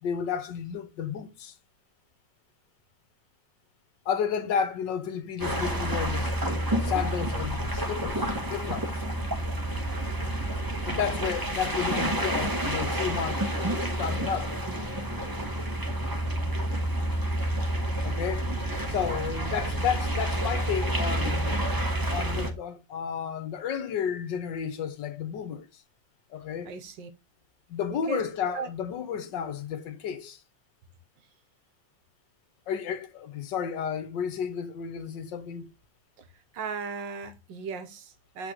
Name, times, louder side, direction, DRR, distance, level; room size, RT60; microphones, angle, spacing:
voice 1, 0.0-1.5 4.0-6.3 6.8-8.9 10.8-13.4 13.8-14.5 18.0-18.5 18.9-21.6 22.1-25.7 26.3-26.7 27.7-30.4 32.7-35.7, left 7 dB, 75° left, 1.6 m, -32 dB
sound 1, 5.4-22.5, right 1 dB, 15° right, 1.1 m, -29 dB
voice 2, 26.6-27.1 27.9-28.2 28.5-28.7 36.2-36.3 36.5-38.5, right 5 dB, 80° right, 1.7 m, -36 dB
8.4 x 4.0 x 2.9 m
omnidirectional pair, 2.0 m